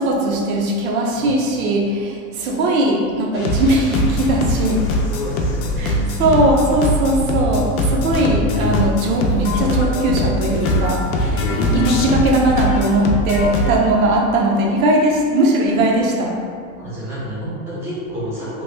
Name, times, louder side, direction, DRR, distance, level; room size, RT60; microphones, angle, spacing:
voice 1, 0.0-4.8 5.8-16.3, right 1 dB, 75° right, -1 dB, 0.7 m, -19 dB
sound 1, 3.3-13.8, left 1 dB, 75° left, 0.6 m, -21 dB
voice 2, 5.1-6.2 16.7-18.6, equal, 5° right, -10 dB, 0.7 m, -29 dB
3.0 x 2.2 x 3.2 m, 2.1 s
supercardioid pair, 160°, 42 cm